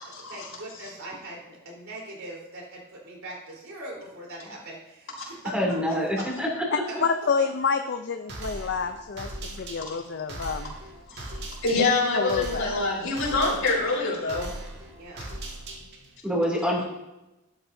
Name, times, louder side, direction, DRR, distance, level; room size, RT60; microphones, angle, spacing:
voice 1, 0.3-5.5 5.9-6.2 6.9-7.0 15.0-15.3, right 1 dB, 70° right, -3 dB, 3.8 m, -40 dB
voice 2, 5.5-6.7 16.2-16.8, equal, 5° right, -2 dB, 2.6 m, -26 dB
voice 3, 6.7-10.7 12.1-12.9, left 5 dB, 55° left, 7 dB, 0.5 m, -28 dB
sound 1, 8.3-16.2, right 1 dB, 55° right, 1.8 m, -39 dB
voice 4, 11.6-14.5, left 3 dB, 80° left, -7 dB, 4.1 m, -25 dB
12.5 x 11.0 x 2.7 m, 0.97 s
head